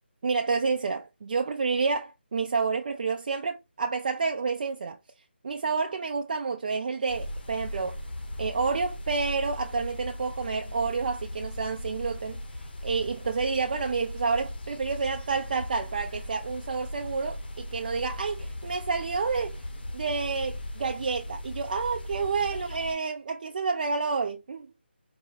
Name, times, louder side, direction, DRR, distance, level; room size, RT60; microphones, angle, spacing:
voice 1, 0.2-5.0 5.4-8.0 8.4-12.4 12.8-19.6 19.9-24.7, right 4 dB, 45° right, 0.4 m, -29 dB
sound 1, 7.1-22.9, left 1 dB, 60° left, 1.0 m, -38 dB
4.3 x 2.2 x 3.3 m
figure-of-eight pair, 155°, 6 cm